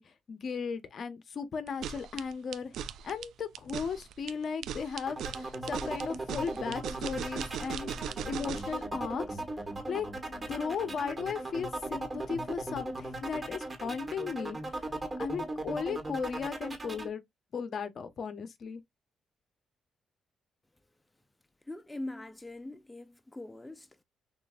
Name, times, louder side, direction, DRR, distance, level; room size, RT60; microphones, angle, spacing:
voice 1, 0.0-7.9 8.2-9.4 9.9-17.2 17.5-18.8, left 6 dB, 55° left, 0.9 m, -36 dB
sound 1, 1.7-8.8, right 8 dB, 80° right, 0.4 m, -39 dB
sound 2, 5.1-17.1, right 2 dB, 25° right, 1.5 m, -38 dB
voice 2, 21.7-24.0, left 1 dB, 10° left, 0.6 m, -42 dB
6.6 x 2.6 x 2.4 m
cardioid pair, 90°, 0 cm